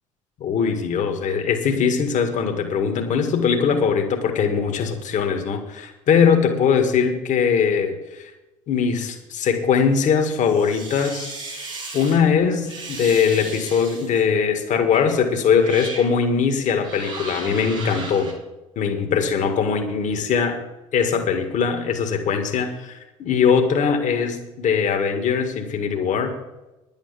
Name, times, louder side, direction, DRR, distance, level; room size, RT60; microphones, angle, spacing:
voice 1, 0.4-8.3 8.7-18.3 18.8-20.6 20.9-26.3, left 6 dB, 50° left, 5 dB, 2.0 m, -21 dB
sound 1, 10.4-12.2 12.6-14.2 14.9-15.1 15.5-16.1 16.8-18.3, right 3 dB, 85° right, 2.9 m, -35 dB
10.5 x 9.1 x 7.0 m, 1.0 s
hypercardioid pair, 65°, 16 cm